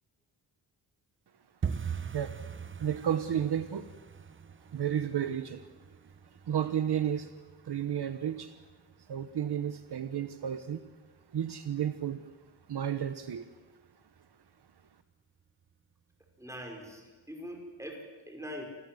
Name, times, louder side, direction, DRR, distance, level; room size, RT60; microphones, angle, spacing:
sound 1, 1.6-12.3 12.6-13.3 13.5-13.9 14.1-14.5 14.8-14.9 15.4-15.9 16.3-16.4 16.9-17.0, right 6 dB, 25° right, 0.8 m, -43 dB
voice 1, 2.8-3.9 4.7-5.7 6.4-7.3 7.6-8.5 9.1-10.8 11.3-12.2 12.7-13.4, right 9 dB, 60° right, 10 dB, 1.2 m, -32 dB
voice 2, 16.4-18.6, equal, 5° right, 2 dB, 5.5 m, -43 dB
28.5 x 20.5 x 7.9 m, 1.4 s
wide cardioid pair, 165°, 45 cm